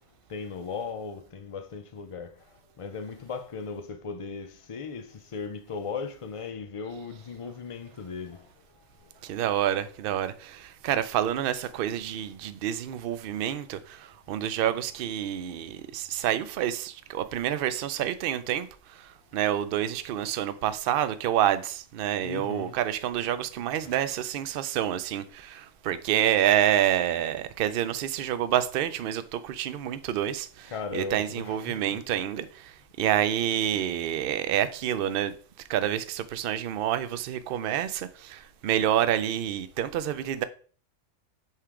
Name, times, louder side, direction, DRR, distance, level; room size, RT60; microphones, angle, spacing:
voice 1, 0.3-2.3 2.8-8.5 22.2-22.8 23.8-24.0 30.7-32.0, left 5 dB, 60° left, 0.3 m, -37 dB
voice 2, 9.2-35.3 35.7-40.4, right 11 dB, 65° right, 0.5 m, -28 dB
5.6 x 3.5 x 4.8 m
omnidirectional pair, 1.4 m